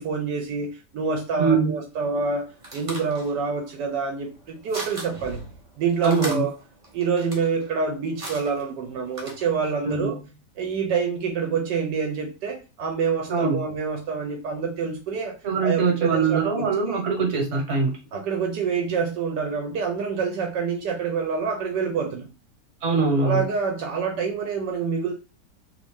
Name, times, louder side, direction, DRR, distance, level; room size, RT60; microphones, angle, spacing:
voice 1, 0.0-5.4 5.8-6.5 6.9-10.2 10.6-15.3 15.6-17.0 18.1-22.2 23.2-25.1, right 5 dB, 75° right, 3 dB, 1.3 m, -27 dB
voice 2, 1.4-1.8 6.0-6.5 9.8-10.1 13.3-13.6 15.4-17.9 22.8-23.5, right 4 dB, 50° right, 2 dB, 1.3 m, -23 dB
sound 1, 2.1-9.8, right 1 dB, 30° right, 0.6 m, -40 dB
3.1 x 2.6 x 3.5 m, 0.30 s
omnidirectional pair, 1.9 m